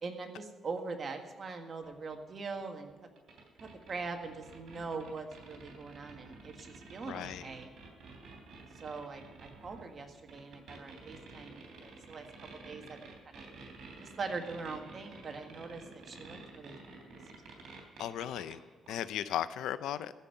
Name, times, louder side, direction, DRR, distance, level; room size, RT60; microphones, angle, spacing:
voice 1, 0.0-2.9 3.6-7.7 8.7-12.2 12.6-13.5 14.0-17.1, right 4 dB, 45° right, 4 dB, 1.7 m, -42 dB
sound 1, 1.8-18.6 18.9-19.0 19.5-19.6, right 3 dB, 65° right, 3.3 m, -51 dB
voice 2, 7.1-7.4 18.0-18.6 18.9-20.1, left 11 dB, 85° left, 14 dB, 0.5 m, -36 dB
14.5 x 5.4 x 9.0 m, 1.4 s
cardioid pair, 90°, 0 cm